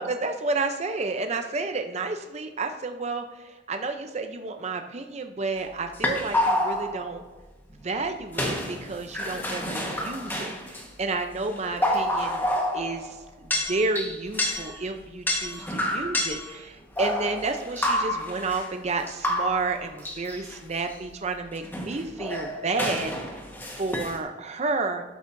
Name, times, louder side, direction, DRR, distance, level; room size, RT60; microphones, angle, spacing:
voice 1, 0.0-7.2 7.8-23.1 23.8-25.0, right 3 dB, 35° right, 6 dB, 0.6 m, -31 dB
sound 1, 5.9-7.1 8.3-10.8 11.4-13.2 13.5-14.8 15.3-16.5 17.0-18.7 19.0-20.6 20.9-21.0 21.6-24.2, left 1 dB, 10° left, 1.4 m, -28 dB
13.5 x 8.3 x 2.7 m, 1.2 s
head